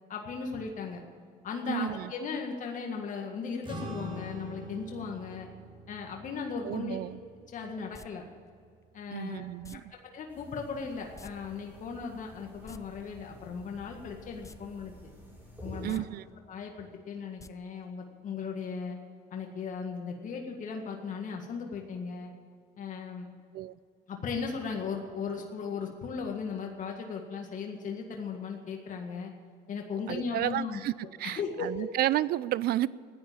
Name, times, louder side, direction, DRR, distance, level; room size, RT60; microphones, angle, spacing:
voice 1, 0.1-1.0 1.4-5.5 5.9-7.0 7.5-8.2 8.9-14.9 15.6-16.0 16.5-19.0 19.3-22.3 22.8-23.3 24.1-29.3 29.7-30.8 31.2-31.9, left 5 dB, 50° left, 1.9 m, -37 dB
voice 2, 1.7-2.1 6.6-7.2 9.1-9.8 15.8-16.2 23.5-23.7 30.1-30.9 31.2-32.9, right 14 dB, 65° right, 0.5 m, -31 dB
sound 1, 3.6-10.3, equal, 30° right, 5.4 m, -45 dB
sound 2, 7.9-8.1 9.6-9.8 11.1-11.3 11.6-11.7 12.5-12.8 14.4-14.6 14.9-15.0 15.8-16.0 17.4-17.5 17.8-17.9, left 4 dB, 20° left, 0.6 m, -48 dB
sound 3, 10.3-16.0, left 1 dB, 10° right, 5.4 m, -49 dB
15.0 x 10.0 x 8.7 m
cardioid pair, 110°, 17 cm